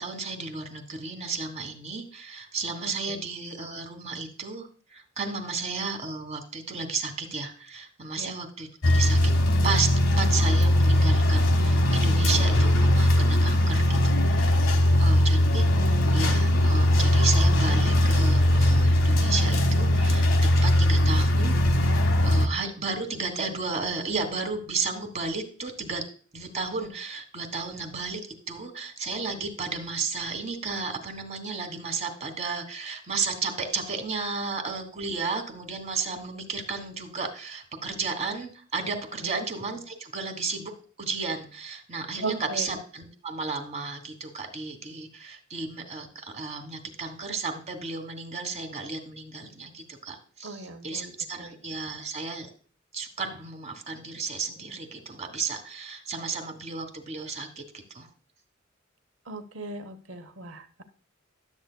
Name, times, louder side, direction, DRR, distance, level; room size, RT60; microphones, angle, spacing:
voice 1, 0.0-9.3 9.6-9.9 10.2-14.6 15.0-15.7 16.1-20.3 20.6-21.6 21.8-26.0 26.3-28.2 28.5-40.7 41.0-52.5 52.9-58.1, right 4 dB, 35° right, 6 dB, 1.4 m, -33 dB
voice 2, 2.8-3.2 8.2-8.3 14.8-15.2 39.2-39.5 42.2-42.7 50.4-51.1 51.4-51.6 59.2-60.8, right 3 dB, 70° right, 9 dB, 1.0 m, -38 dB
sound 1, 8.8-22.5, left 1 dB, 75° left, 1.1 m, -20 dB
11.5 x 8.1 x 2.2 m, 0.41 s
head